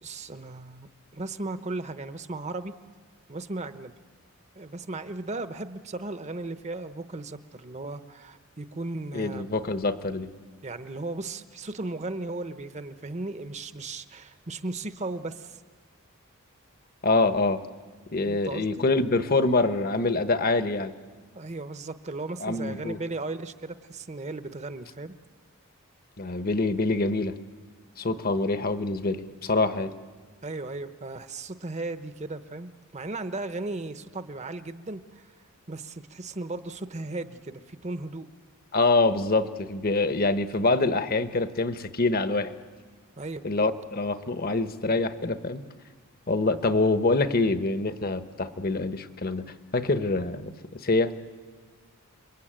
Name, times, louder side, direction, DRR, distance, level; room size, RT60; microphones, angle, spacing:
voice 1, 0.0-2.7 3.3-3.9 4.6-9.5 10.6-15.6 18.3-18.8 21.3-25.1 30.4-35.3 35.7-38.3 43.2-43.4, right 2 dB, 30° right, 11 dB, 0.9 m, -36 dB
voice 2, 9.1-10.3 17.0-17.6 18.1-20.9 22.4-23.0 26.2-27.3 28.0-29.9 38.7-42.5 43.4-45.6 46.3-50.5 50.8-51.1, left 3 dB, 45° left, 10 dB, 1.1 m, -25 dB
29.5 x 22.0 x 9.0 m, 1.5 s
head